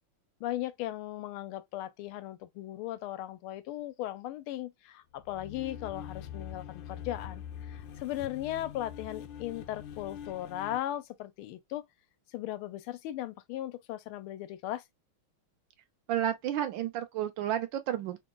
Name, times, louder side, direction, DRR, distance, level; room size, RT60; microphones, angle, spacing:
voice 1, 0.4-11.8 12.3-14.8, left 13 dB, 90° left, 1.5 m, -37 dB
sound 1, 5.2-10.8, left 9 dB, 75° left, 1.2 m, -44 dB
voice 2, 16.1-18.2, right 11 dB, 75° right, 1.2 m, -31 dB
3.8 x 2.1 x 3.7 m
omnidirectional pair, 2.3 m